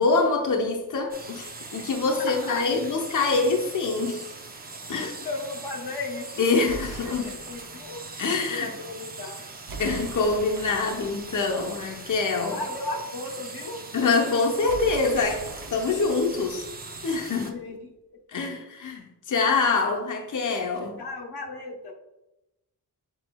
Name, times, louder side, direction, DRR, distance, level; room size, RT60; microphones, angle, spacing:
voice 1, 0.0-4.4 4.9-5.1 6.4-7.4 8.2-8.7 9.8-12.6 13.9-16.7 17.0-17.6 18.3-21.0, left 4 dB, 50° left, 0.7 m, -25 dB
sound 1, 1.1-17.5, right 3 dB, 25° right, 0.5 m, -41 dB
voice 2, 2.2-2.7 4.9-6.5 7.0-8.1 8.5-9.5 12.5-13.9 17.5-18.6 21.0-21.9, left 2 dB, 85° left, 0.9 m, -36 dB
sound 2, 6.7-7.9 9.7-12.4 14.7-17.4, right 4 dB, 60° right, 0.7 m, -42 dB
6.1 x 3.7 x 2.2 m
wide cardioid pair, 95°, 38 cm